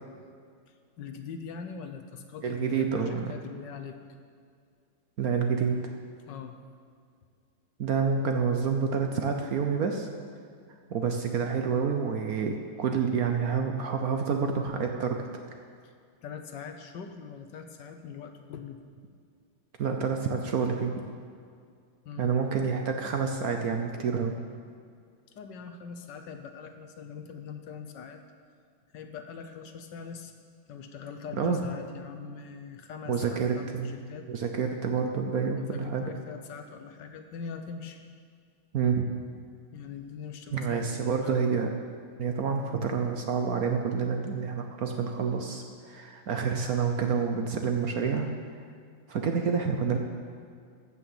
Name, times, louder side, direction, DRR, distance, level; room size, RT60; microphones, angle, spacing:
voice 1, 1.0-4.0 6.3-6.6 15.8-15.9 16.2-18.8 22.0-22.3 25.3-28.2 28.9-30.3 30.7-34.3 35.6-38.0 39.7-41.4, left 6 dB, 70° left, 6 dB, 1.4 m, -42 dB
voice 2, 2.4-3.3 5.2-5.8 7.8-10.1 10.9-15.2 19.8-21.0 22.2-24.4 31.4-31.6 33.1-33.9 34.3-36.1 38.7-39.1 40.5-41.7 42.2-48.3 49.1-50.0, right 6 dB, 60° right, 4 dB, 1.1 m, -28 dB
14.0 x 6.4 x 7.2 m, 2.2 s
omnidirectional pair, 2.1 m